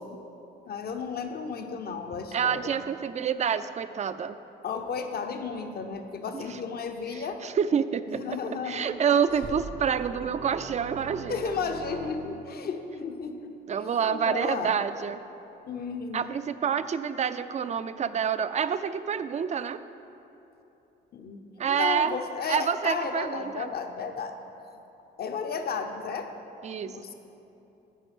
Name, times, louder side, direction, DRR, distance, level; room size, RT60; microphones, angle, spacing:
voice 1, 0.6-2.8 4.6-7.4 8.1-9.0 9.3-9.5 11.3-14.8 15.7-16.3 21.1-24.3 25.2-26.3 26.8-27.1, left 5 dB, 50° left, 6 dB, 0.8 m, -34 dB
voice 2, 2.3-4.4 6.3-6.6 7.1-8.4 8.6-11.4 13.7-15.2 16.1-19.8 21.6-22.1 22.5-23.7 26.6-26.9, right 7 dB, 35° right, 12 dB, 0.4 m, -28 dB
sound 1, 9.4-12.7, right 4 dB, 60° right, 0.8 m, -41 dB
10.0 x 4.8 x 7.1 m, 3.0 s
cardioid pair, 90°, 20 cm